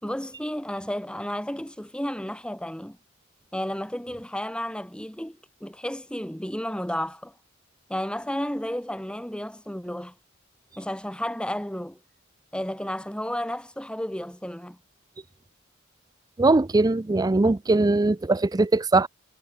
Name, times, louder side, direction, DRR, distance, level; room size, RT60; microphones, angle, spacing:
voice 1, 0.0-3.0 3.5-7.3 7.9-10.1 10.8-12.0 12.5-14.8, equal, 5° left, 2.6 m, -32 dB
voice 2, 16.4-19.1, right 2 dB, 20° right, 0.4 m, -21 dB
head